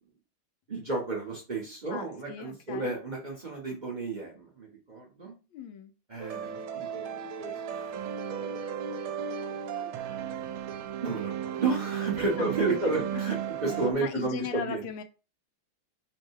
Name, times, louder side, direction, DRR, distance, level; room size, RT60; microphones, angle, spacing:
voice 1, 0.7-5.3 6.1-8.6 9.8-9.9 11.0-14.9, right 3 dB, 35° right, 0.7 m, -32 dB
voice 2, 1.9-2.9 5.5-5.9 12.4-12.8 13.1-13.2 13.9-15.0, left 9 dB, 75° left, 1.3 m, -38 dB
sound 1, 6.2-13.9, right 8 dB, 80° right, 1.4 m, -35 dB
4.5 x 2.2 x 4.5 m
omnidirectional pair, 2.3 m